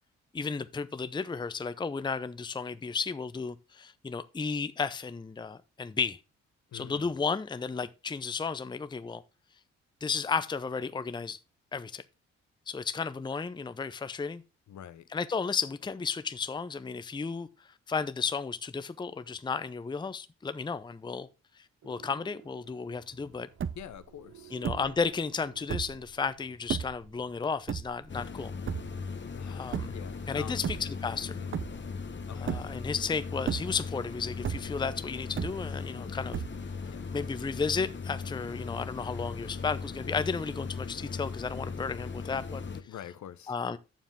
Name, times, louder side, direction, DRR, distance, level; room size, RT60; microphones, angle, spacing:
voice 1, 0.3-6.2 6.7-9.2 10.0-11.4 11.7-12.0 12.7-14.4 15.1-17.5 17.9-21.3 21.8-23.5 24.5-28.5 29.5-30.0 30.3-31.4 32.4-36.4 37.1-42.7 43.5-43.8, left 5 dB, 15° left, 0.6 m, -33 dB
voice 2, 6.7-7.2 14.7-15.1 23.7-24.6 29.3-30.7 31.3-31.6 32.3-32.6 36.9-37.1 40.1-40.2 42.8-43.6, left 10 dB, 55° left, 0.8 m, -46 dB
sound 1, 21.8-26.4, right 10 dB, 60° right, 1.1 m, -56 dB
sound 2, 23.1-23.2 23.4-24.0 24.6-25.0 25.6-26.1 26.7-27.1 27.7-28.3 28.7-29.1 29.7-30.1 30.5-31.2 31.5-32.0 32.5-33.0 33.4-34.0 34.4-34.9 35.4-36.0 36.3-36.9, right 7 dB, 35° right, 0.6 m, -34 dB
sound 3, 28.1-42.8, left 5 dB, 30° left, 1.1 m, -38 dB
9.1 x 7.1 x 3.6 m
hypercardioid pair, 45°, 35 cm